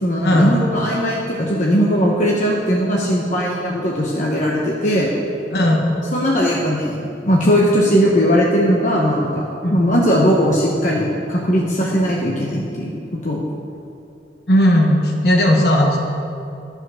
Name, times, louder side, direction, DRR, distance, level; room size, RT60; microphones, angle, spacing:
voice 1, 0.0-5.1 6.1-13.4, equal, 45° left, -3 dB, 0.9 m, -18 dB
voice 2, 5.5-6.0 9.6-9.8 11.8-11.9 14.5-16.0, equal, 60° left, 0 dB, 1.4 m, -16 dB
11.5 x 5.3 x 6.2 m, 2.6 s
head